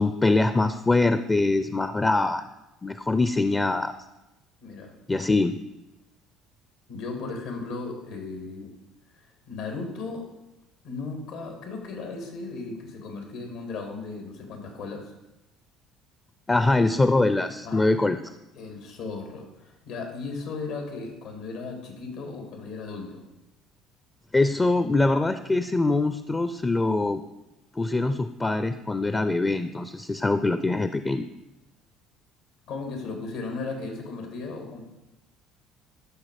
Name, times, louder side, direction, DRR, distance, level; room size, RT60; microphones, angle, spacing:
voice 1, 0.0-2.5 2.8-3.9 5.1-5.6 16.5-18.2 24.3-27.2 27.8-31.3, left 2 dB, 20° left, 11 dB, 0.5 m, -23 dB
voice 2, 4.6-4.9 6.9-8.7 9.2-10.3 10.8-15.1 17.6-17.9 18.5-23.2 32.7-34.8, left 3 dB, 80° left, 3 dB, 2.7 m, -36 dB
13.0 x 5.9 x 5.0 m, 0.97 s
supercardioid pair, 85°, 0 cm